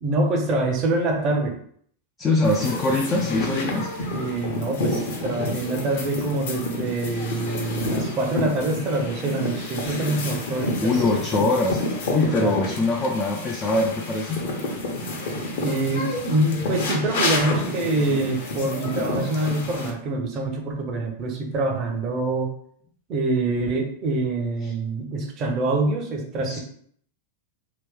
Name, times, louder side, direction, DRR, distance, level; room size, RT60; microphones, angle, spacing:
voice 1, 0.0-1.6 4.1-11.0 12.4-12.6 15.6-22.5 23.1-26.6, right 2 dB, 35° right, 3 dB, 0.8 m, -25 dB
voice 2, 2.2-3.9 10.8-11.8 12.1-14.4 24.6-24.7 26.5-26.6, left 2 dB, 20° left, -1 dB, 0.5 m, -23 dB
sound 1, 2.4-19.9, left 2 dB, 55° left, 1.0 m, -29 dB
3.0 x 2.9 x 3.5 m, 0.63 s
figure-of-eight pair, 90°, 0 cm